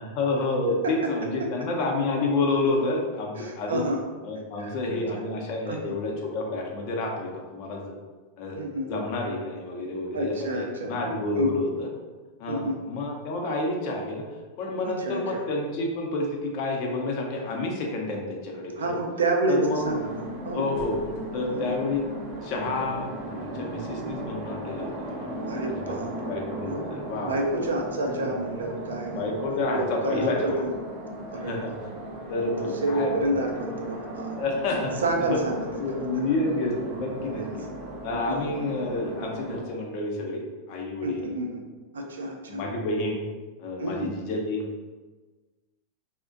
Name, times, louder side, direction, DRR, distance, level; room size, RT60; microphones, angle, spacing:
voice 1, 0.0-3.9 4.2-7.9 8.4-8.6 8.9-11.9 12.4-14.3 14.6-18.9 19.5-20.0 20.5-21.0 21.3-22.0 22.4-25.3 25.7-25.9 26.3-27.4 28.0-28.3 29.1-30.6 31.3-31.7 32.3-33.3 34.3-35.0 35.3-35.4 35.8-37.6 38.0-40.4 40.7-41.3 42.5-43.2 43.6-44.6, left 2 dB, 55° left, 0 dB, 0.5 m, -29 dB
voice 2, 3.4-4.0 4.6-5.2 5.7-5.9 8.6-8.9 10.1-11.0 11.4-11.6 12.5-12.8 14.9-15.4 18.8-20.7 21.5-21.8 25.5-26.3 26.7-26.8 27.2-29.3 29.7-30.7 31.3-31.6 32.6-34.4 35.0-36.3 37.4-37.5 38.3-38.4 41.0-41.6 41.9-42.6 43.8-44.1, right 1 dB, 85° right, 2 dB, 0.4 m, -29 dB
sound 1, 19.6-39.6, right 1 dB, 50° right, 0.8 m, -37 dB
2.4 x 2.1 x 2.4 m, 1.3 s
hypercardioid pair, 95°, 0 cm